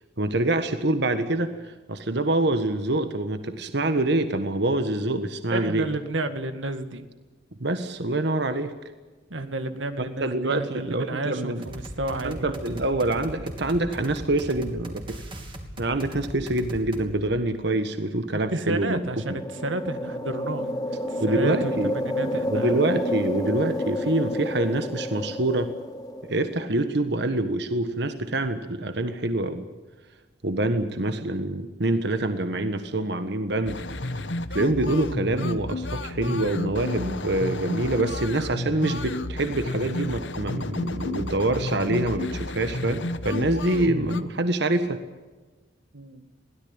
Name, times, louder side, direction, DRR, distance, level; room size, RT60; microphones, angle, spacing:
voice 1, 0.2-5.9 7.6-8.7 10.0-11.6 12.2-15.2 15.8-19.0 21.2-21.9 22.5-25.7 26.3-29.6 30.4-33.8 34.5-45.0, right 2 dB, 60° right, 9 dB, 1.4 m, -26 dB
voice 2, 5.5-7.1 9.3-12.5 18.5-22.8 45.9-46.3, right 2 dB, 90° right, 9 dB, 1.9 m, -31 dB
sound 1, 11.6-17.1, equal, 25° right, 3.1 m, -38 dB
sound 2, 19.0-26.6, left 1 dB, 20° left, 2.1 m, -30 dB
sound 3, 33.7-44.2, left 2 dB, 70° left, 1.3 m, -32 dB
22.5 x 17.0 x 8.8 m, 1.3 s
head